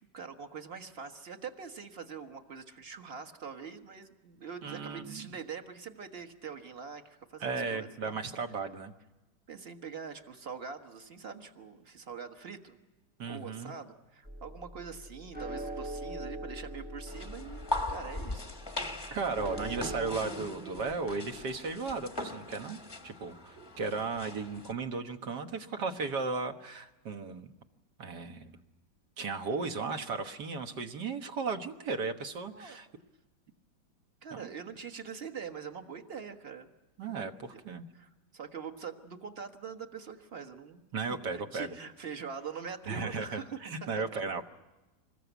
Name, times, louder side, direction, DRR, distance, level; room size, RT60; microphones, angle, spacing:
voice 1, 0.1-8.2 9.5-12.8 13.2-18.5 18.9-19.1 19.6-20.0 29.6-29.7 32.5-32.8 34.2-36.7 37.1-37.2 37.5-37.6 37.9-43.6 44.0-44.2, right 6 dB, 35° right, 5 dB, 1.6 m, -44 dB
voice 2, 4.6-5.3 7.4-8.9 13.2-13.7 19.1-22.8 23.0-27.5 28.0-28.6 29.2-32.9 34.3-34.5 37.0-37.9 40.9-41.7 42.9-44.4, right 4 dB, 60° right, 6 dB, 1.9 m, -35 dB
sound 1, 14.2-20.2, right 1 dB, 5° right, 0.8 m, -42 dB
sound 2, 17.1-24.7, left 1 dB, 15° left, 1.0 m, -40 dB
26.5 x 20.5 x 8.2 m, 1.1 s
omnidirectional pair, 2.1 m